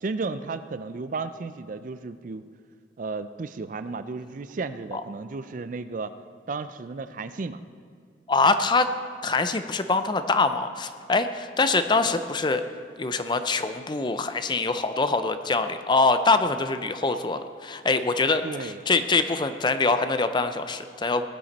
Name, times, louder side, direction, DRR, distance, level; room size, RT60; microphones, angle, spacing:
voice 1, 0.0-2.4 3.0-6.2 6.5-7.6 18.4-18.8, right 4 dB, 45° right, 12 dB, 0.4 m, -33 dB
voice 2, 8.3-8.9 9.2-12.6 13.0-21.3, left 3 dB, 25° left, 10 dB, 0.5 m, -24 dB
19.0 x 8.9 x 4.1 m, 2.1 s
head